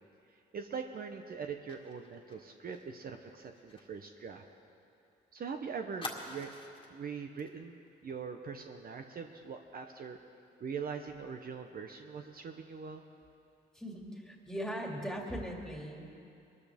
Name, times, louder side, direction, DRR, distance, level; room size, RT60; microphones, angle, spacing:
voice 1, 0.3-4.4 5.3-6.5 6.9-10.2 10.6-13.0, right 6 dB, 50° right, 5 dB, 0.8 m, -42 dB
Fire, 1.7-5.1 5.4-5.5 6.0-7.0 7.4-7.6 7.9-8.1, left 2 dB, 25° left, 1.9 m, -47 dB
voice 2, 13.7-16.0, equal, ahead, -1 dB, 2.4 m, -39 dB
22.5 x 13.5 x 3.6 m, 2.7 s
cardioid pair, 90°, 20 cm